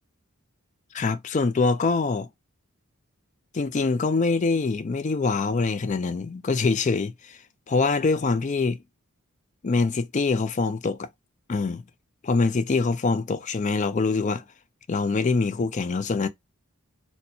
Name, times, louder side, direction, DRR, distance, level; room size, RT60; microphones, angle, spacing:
voice 1, 0.9-2.3 3.5-7.4 7.7-8.8 9.6-11.1 11.5-11.8 12.2-14.4 14.9-16.3, left 4 dB, 35° left, 0.4 m, -24 dB
4.3 x 2.1 x 2.6 m
head